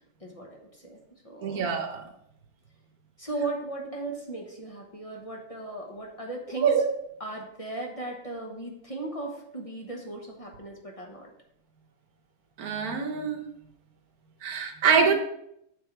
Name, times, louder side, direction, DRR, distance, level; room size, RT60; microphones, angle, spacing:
voice 1, 0.2-1.0 1.2-1.7 3.2-6.7 7.2-11.3, right 2 dB, 25° left, -1 dB, 1.0 m, -37 dB
voice 2, 1.4-2.0 6.6-6.9 12.6-13.4 14.4-15.1, right 6 dB, 90° right, 5 dB, 1.5 m, -24 dB
6.6 x 4.4 x 4.6 m, 0.76 s
omnidirectional pair, 1.5 m